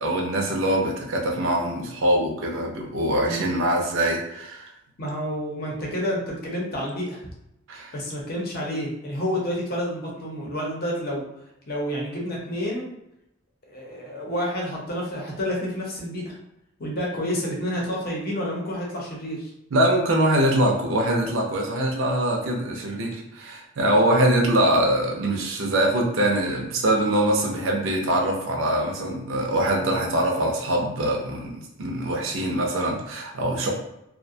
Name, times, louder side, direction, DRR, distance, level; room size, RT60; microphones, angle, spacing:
voice 1, 0.0-4.7 7.7-7.9 19.7-33.7, right 1 dB, 75° right, 0 dB, 0.5 m, -23 dB
voice 2, 5.0-7.3 7.9-11.2 11.7-12.9 13.7-16.4 16.8-19.5, equal, 50° left, -3 dB, 0.7 m, -29 dB
2.4 x 2.1 x 2.6 m, 0.84 s
head